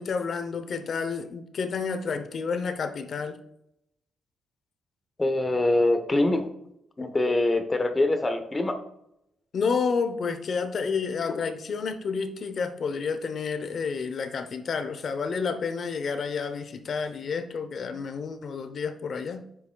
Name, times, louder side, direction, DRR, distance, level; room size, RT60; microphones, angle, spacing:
voice 1, 0.0-3.4 7.0-7.1 9.5-19.5, left 5 dB, 55° left, 0.7 m, -30 dB
voice 2, 5.2-6.5 7.0-8.8, left 2 dB, 20° left, 0.8 m, -24 dB
9.5 x 5.7 x 2.3 m
cardioid pair, 120°, 0 cm